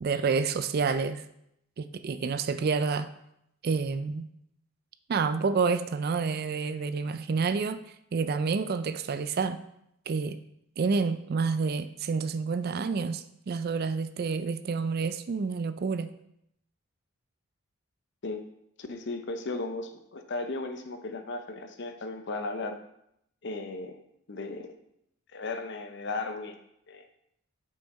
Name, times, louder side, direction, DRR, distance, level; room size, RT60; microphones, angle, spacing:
voice 1, 0.0-1.2 1.8-3.1 3.6-4.3 5.1-7.8 8.1-9.6 10.1-10.4 10.8-16.1, right 5 dB, 45° right, 12 dB, 0.3 m, -29 dB
voice 2, 18.8-22.8 23.4-24.0 24.3-24.7 25.3-26.6 26.9-27.1, left 3 dB, 50° left, 7 dB, 0.6 m, -35 dB
6.3 x 5.6 x 4.1 m, 0.77 s
head